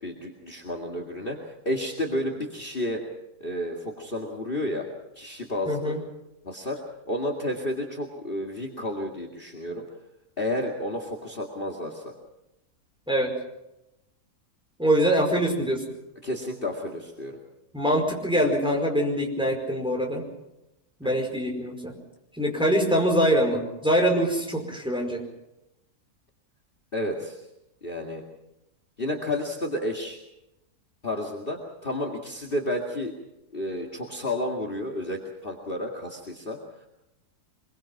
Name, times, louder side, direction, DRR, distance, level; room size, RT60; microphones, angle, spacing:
voice 1, 0.0-1.4 1.7-3.0 3.4-4.9 5.2-6.0 6.4-9.8 10.4-12.1 16.2-17.4 21.0-21.2 26.9-27.4 27.8-28.2 29.0-30.2 31.0-33.1 33.5-36.9, left 1 dB, 35° left, 3 dB, 2.4 m, -31 dB
voice 2, 5.7-6.0 13.1-13.3 14.8-15.8 17.7-20.3 21.0-21.9 22.4-25.2, equal, 5° right, 1 dB, 4.9 m, -24 dB
24.5 x 22.5 x 5.9 m, 0.89 s
omnidirectional pair, 1.6 m